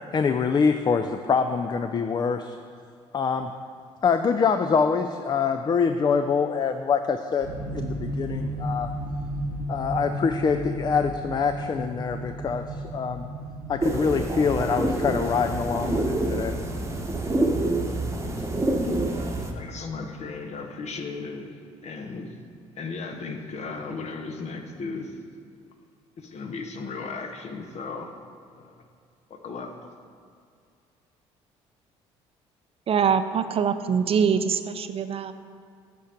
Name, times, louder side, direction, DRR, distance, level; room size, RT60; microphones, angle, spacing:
voice 1, 0.1-2.6 3.1-3.5 4.0-7.5 7.7-8.9 9.7-13.2 13.7-16.5, left 5 dB, 30° left, 8 dB, 0.4 m, -25 dB
sound 1, 7.4-14.8, equal, 75° right, 1.2 m, -33 dB
sound 2, 13.8-19.5, right 2 dB, 20° right, 1.0 m, -27 dB
voice 2, 19.5-22.4 22.8-25.2 26.2-28.2 28.6-28.8 29.3-29.9, left 4 dB, 50° left, 5 dB, 0.9 m, -36 dB
voice 3, 32.9-35.3, right 7 dB, 40° right, 10 dB, 0.5 m, -23 dB
8.4 x 4.5 x 5.0 m, 2.2 s
hypercardioid pair, 60°, 14 cm